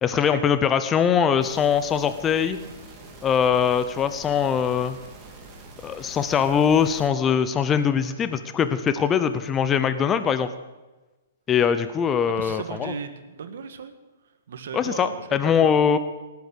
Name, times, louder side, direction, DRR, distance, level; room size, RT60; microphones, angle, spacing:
voice 1, 0.0-2.6 3.2-5.0 5.8-10.5 11.5-12.9 14.7-16.0, left 7 dB, 20° left, 11 dB, 0.7 m, -22 dB
sound 1, 1.4-7.1, right 2 dB, 20° right, 2.9 m, -45 dB
voice 2, 12.3-13.9 14.5-15.7, right 6 dB, 70° right, 8 dB, 1.7 m, -36 dB
18.5 x 8.5 x 6.4 m, 1.2 s
hypercardioid pair, 145°, 0 cm